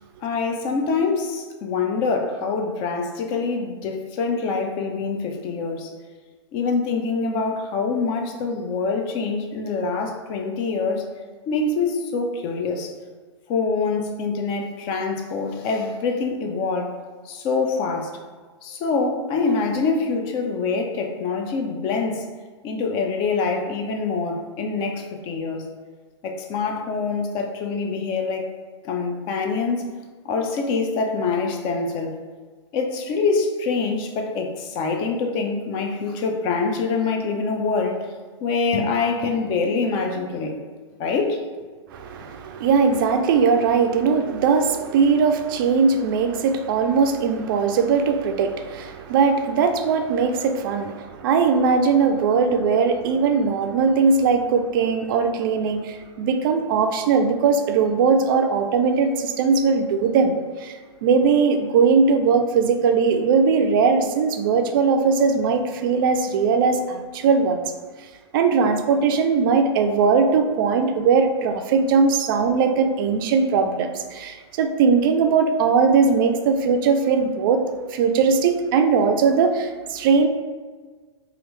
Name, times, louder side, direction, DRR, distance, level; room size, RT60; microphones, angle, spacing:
voice 1, 0.2-5.9 6.5-11.1 11.5-12.9 13.5-16.9 17.3-18.1 18.6-22.2 22.6-25.7 26.2-28.6 28.8-29.9 30.2-32.2 32.7-38.0 38.4-40.6 41.0-41.4, left 4 dB, 30° left, 3 dB, 0.4 m, -25 dB
voice 2, 41.9-60.4 60.6-60.7 61.0-67.6 68.3-77.6 77.9-80.3, right 5 dB, 45° right, 6 dB, 0.4 m, -20 dB
2.9 x 2.4 x 3.2 m, 1.5 s
figure-of-eight pair, 110°, 15 cm